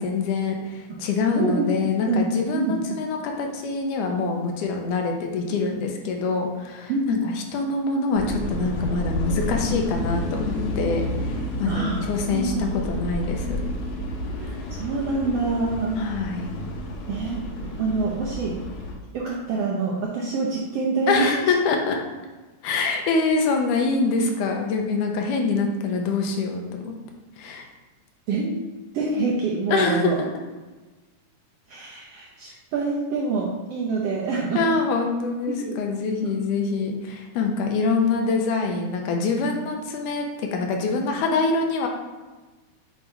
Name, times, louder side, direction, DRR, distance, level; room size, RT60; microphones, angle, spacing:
voice 1, 0.0-13.6 16.0-16.6 21.1-22.0 22.6-27.0 27.4-27.7 29.7-30.3 34.6-41.9, left 4 dB, 90° left, 2 dB, 2.2 m, -25 dB
voice 2, 1.3-2.2 2.5-2.8 6.9-7.2 11.7-12.7 14.4-16.0 17.1-18.6 19.1-21.5 28.3-28.6 28.9-30.2 31.7-34.6 35.5-35.8 36.2-36.3, right 3 dB, 75° right, -4 dB, 1.4 m, -26 dB
sound 1, 8.1-19.0, left 1 dB, 75° left, 2.0 m, -30 dB
7.9 x 2.7 x 4.4 m, 1.2 s
omnidirectional pair, 3.6 m